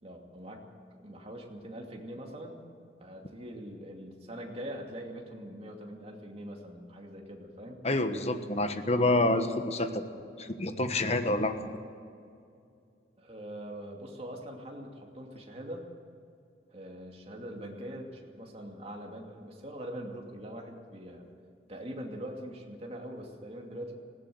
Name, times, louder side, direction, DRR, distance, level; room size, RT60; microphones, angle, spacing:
voice 1, 0.0-0.6 0.9-2.6 3.0-7.8 13.2-15.8 16.7-21.3 21.7-24.0, equal, 35° right, 1 dB, 2.6 m, -43 dB
voice 2, 7.8-10.0 10.4-11.8, left 2 dB, 35° left, 8 dB, 1.3 m, -28 dB
19.5 x 17.0 x 7.9 m, 2.4 s
head